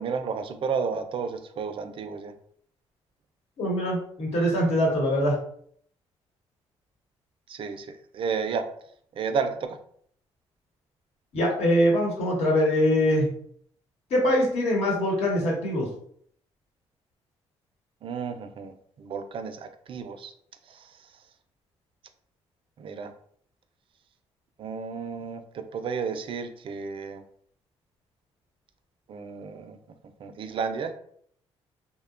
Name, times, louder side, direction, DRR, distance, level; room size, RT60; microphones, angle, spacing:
voice 1, 0.0-2.3 7.5-8.7 9.1-9.8 18.0-20.3 20.7-21.1 22.8-23.1 24.6-27.2 29.1-29.8 30.2-30.9, right 5 dB, 50° right, 8 dB, 0.4 m, -32 dB
voice 2, 3.6-5.4 11.3-13.3 14.1-15.9, equal, 70° left, -2 dB, 1.1 m, -23 dB
2.8 x 2.1 x 2.4 m, 0.62 s
cardioid pair, 80°, 11 cm